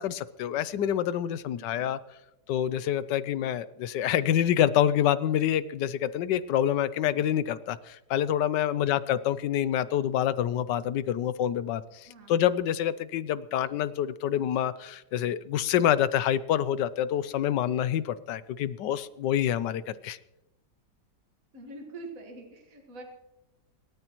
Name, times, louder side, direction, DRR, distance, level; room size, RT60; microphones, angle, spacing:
voice 1, 0.0-2.0 2.5-20.2, left 10 dB, 80° left, 15 dB, 1.3 m, -27 dB
voice 2, 1.6-1.9 8.8-9.2 12.0-12.5 21.5-23.0, right 2 dB, 50° right, 2 dB, 2.0 m, -45 dB
28.0 x 13.0 x 3.0 m, 0.92 s
omnidirectional pair, 1.9 m